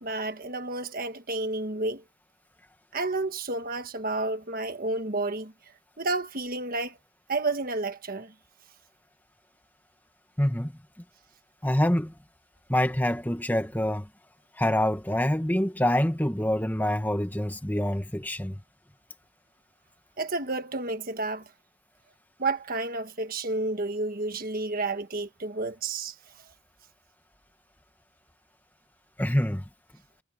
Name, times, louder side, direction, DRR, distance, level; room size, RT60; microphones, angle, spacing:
voice 1, 0.0-2.0 2.9-5.5 6.0-7.0 7.3-8.3 20.2-21.5 22.4-26.1, right 2 dB, 40° right, 1.5 m, -30 dB
voice 2, 10.4-10.7 11.6-12.1 12.7-14.1 14.5-18.6 29.2-29.6, left 1 dB, 10° left, 1.6 m, -26 dB
head